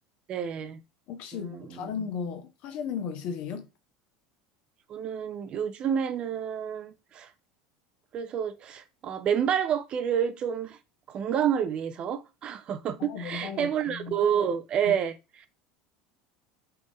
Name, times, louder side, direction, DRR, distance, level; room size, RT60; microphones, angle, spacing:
voice 1, 0.3-0.8 1.3-1.9 4.9-7.3 8.1-10.8 11.1-15.1 15.4-15.5, right 8 dB, 40° right, 0.5 m, -29 dB
voice 2, 1.1-3.7 13.0-14.2 14.8-14.9, left 6 dB, 55° left, 0.8 m, -35 dB
3.3 x 2.6 x 3.5 m
supercardioid pair, 105°, 2 cm